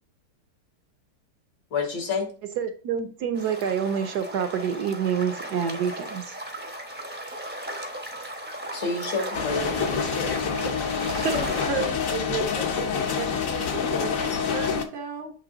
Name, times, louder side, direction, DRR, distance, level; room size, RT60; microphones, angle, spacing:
voice 1, 1.7-2.3 8.7-10.8, left 4 dB, 75° left, 2.5 m, -30 dB
voice 2, 2.4-6.4, right 7 dB, 65° right, 1.1 m, -27 dB
sound 1, 3.3-11.6, right 1 dB, 10° right, 0.5 m, -36 dB
sound 2, 9.3-14.8, left 6 dB, 55° left, 1.0 m, -27 dB
voice 3, 11.2-15.3, right 4 dB, 85° right, 1.9 m, -33 dB
8.2 x 3.2 x 3.9 m
omnidirectional pair, 2.1 m